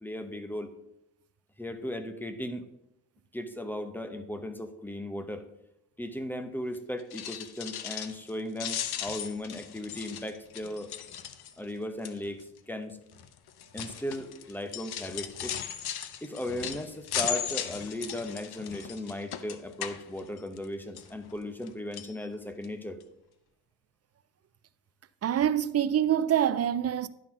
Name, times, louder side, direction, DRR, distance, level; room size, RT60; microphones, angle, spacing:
voice 1, 0.0-0.7 1.6-2.6 3.3-5.5 6.0-10.9 11.6-13.0 13.7-15.6 16.2-23.0, left 1 dB, 5° left, 0.8 m, -36 dB
sound 1, 7.0-8.3 8.6-11.7 12.0-12.4 13.1-20.7 21.0-21.7 21.9-22.1 22.6-22.7 23.0-23.1, left 10 dB, 85° left, 0.7 m, -37 dB
voice 2, 25.2-27.1, right 10 dB, 45° right, 0.4 m, -25 dB
10.5 x 3.9 x 6.1 m
cardioid pair, 110°, 37 cm